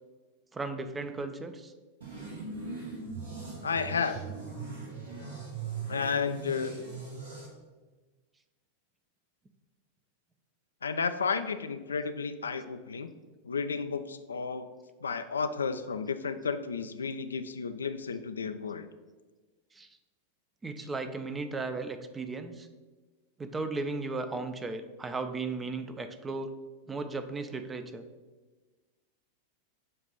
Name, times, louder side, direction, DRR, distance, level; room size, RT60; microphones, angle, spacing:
voice 1, 0.5-1.7 19.7-19.9 20.6-22.7 23.4-26.5 26.9-28.0, right 3 dB, 15° right, 8 dB, 0.5 m, -36 dB
sound 1, 2.0-7.5, right 4 dB, 65° right, 1.6 m, -40 dB
voice 2, 3.6-4.2 5.9-6.7 10.8-13.1 13.4-14.7 15.0-18.9, left 5 dB, 70° left, 10 dB, 0.3 m, -32 dB
7.5 x 2.6 x 5.6 m, 1.3 s
figure-of-eight pair, 90°, 0 cm